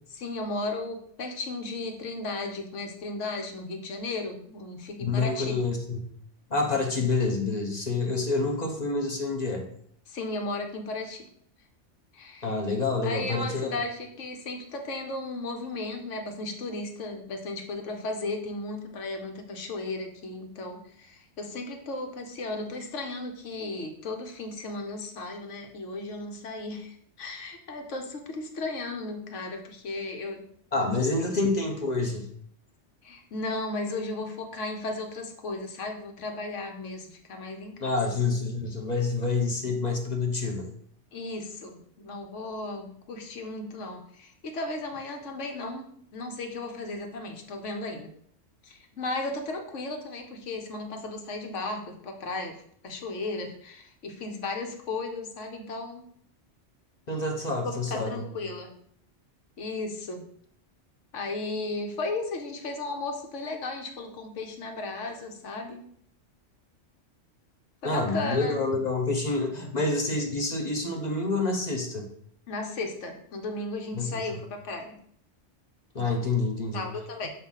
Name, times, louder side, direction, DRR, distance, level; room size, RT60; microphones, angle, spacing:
voice 1, 0.1-5.6 10.1-11.3 12.1-12.6 13.0-30.4 30.8-31.0 31.3-31.4 33.0-38.0 41.1-45.9 46.1-48.1 48.6-52.6 52.8-56.0 57.6-58.7 59.6-60.2 61.1-65.9 67.8-68.6 72.5-74.9 76.7-77.3, left 2 dB, 80° left, 3 dB, 1.2 m, -35 dB
voice 2, 5.0-6.0 6.5-9.6 12.4-13.7 30.7-32.3 37.8-40.7 57.1-58.3 67.8-72.0 73.9-74.2 75.9-76.8, left 3 dB, 40° left, 1 dB, 1.0 m, -27 dB
6.6 x 2.7 x 5.6 m, 0.64 s
omnidirectional pair, 1.2 m